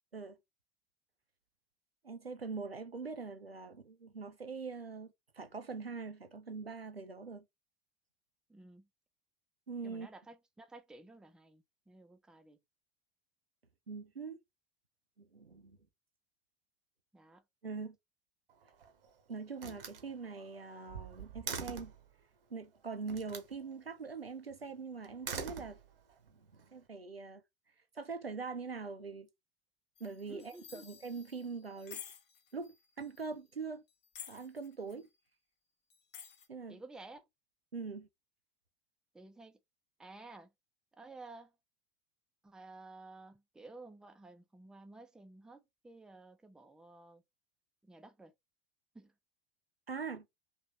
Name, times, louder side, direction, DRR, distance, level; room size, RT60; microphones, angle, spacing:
voice 1, 2.0-7.4 9.7-10.1 13.9-14.4 15.2-15.8 17.6-18.0 19.3-21.9 22.5-25.8 26.3-27.4 27.9-29.3 30.0-32.0 32.5-33.8 34.3-35.1 36.5-36.8 37.7-38.1 49.9-50.3, right 4 dB, 90° right, 0.6 m, -43 dB
voice 2, 8.5-8.9 9.8-12.6 17.1-17.4 30.3-30.9 36.7-37.3 39.1-39.6 40.0-40.5 41.0-41.5 42.4-47.2 47.8-48.3 48.9-49.1, right 2 dB, ahead, 0.4 m, -53 dB
Slam, 18.5-19.1 19.6-22.0 23.1-23.5 25.0-26.2, right 6 dB, 70° right, 0.9 m, -43 dB
sound 1, 30.0-33.3 33.9-35.0 35.9-36.5, left 9 dB, 35° left, 1.0 m, -52 dB
3.4 x 3.0 x 2.7 m
figure-of-eight pair, 75°, 29 cm